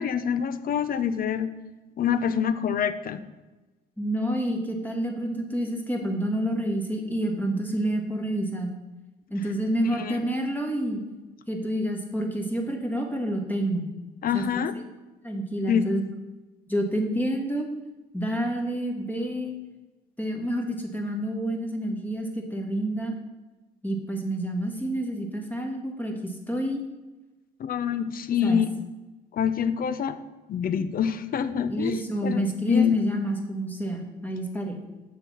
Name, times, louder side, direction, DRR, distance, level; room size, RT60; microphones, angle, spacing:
voice 1, 0.0-1.5 2.0-3.2 9.9-10.2 14.2-14.7 15.7-15.8 27.6-28.7 29.3-30.2 30.5-32.0 32.2-33.0, left 8 dB, 50° left, 13 dB, 0.6 m, -26 dB
voice 2, 4.0-8.7 9.3-11.0 11.5-13.9 14.3-14.4 14.7-14.8 15.2-16.0 16.7-17.7 18.1-19.5 20.2-23.1 23.8-26.8 28.4-28.6 31.7-34.8, right 1 dB, 10° left, 2 dB, 1.5 m, -28 dB
6.5 x 4.1 x 6.0 m, 1.2 s
supercardioid pair, 75°, 19 cm